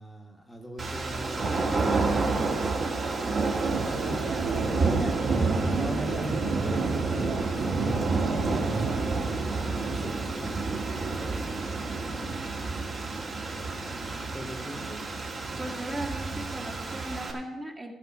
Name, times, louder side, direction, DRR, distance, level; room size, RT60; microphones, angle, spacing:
voice 1, 0.0-2.7 3.2-10.5 14.3-14.8, equal, 10° left, 1 dB, 1.4 m, -40 dB
sound 1, 0.8-17.3, right 3 dB, 45° right, 2.2 m, -29 dB
sound 2, 3.6-9.3, right 4 dB, 80° right, 1.9 m, -33 dB
voice 2, 15.6-17.9, right 1 dB, 20° right, 1 dB, 1.6 m, -37 dB
14.0 x 5.5 x 7.3 m, 1.0 s
cardioid pair, 90°, 0 cm